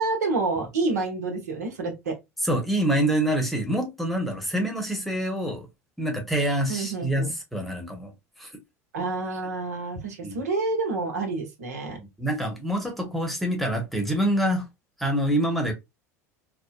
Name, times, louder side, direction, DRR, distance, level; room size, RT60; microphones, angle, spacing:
voice 1, 0.0-2.1 6.7-7.3 8.9-12.0, right 3 dB, 75° right, 0.9 m, -28 dB
voice 2, 2.4-5.7 6.0-8.1 8.4-8.5 10.2-10.4 12.0-14.7 15.0-15.7, right 1 dB, ahead, 1.0 m, -26 dB
3.5 x 2.1 x 2.2 m
figure-of-eight pair, 75°, 9 cm